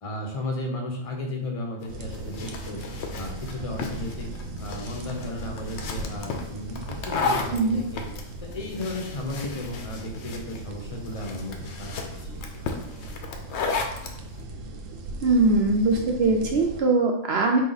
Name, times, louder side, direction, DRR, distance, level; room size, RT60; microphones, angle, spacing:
voice 1, 0.0-2.8 3.1-4.3 4.6-8.0 8.4-11.9, left 1 dB, 35° left, 1 dB, 0.7 m, -34 dB
sound 1, 1.8-14.2, left 4 dB, 65° left, 0.8 m, -34 dB
sound 2, 1.9-16.8, right 1 dB, 80° right, 1.0 m, -38 dB
voice 2, 15.2-17.6, right 3 dB, 65° right, 2 dB, 0.7 m, -21 dB
4.2 x 2.8 x 3.9 m, 0.76 s
omnidirectional pair, 1.3 m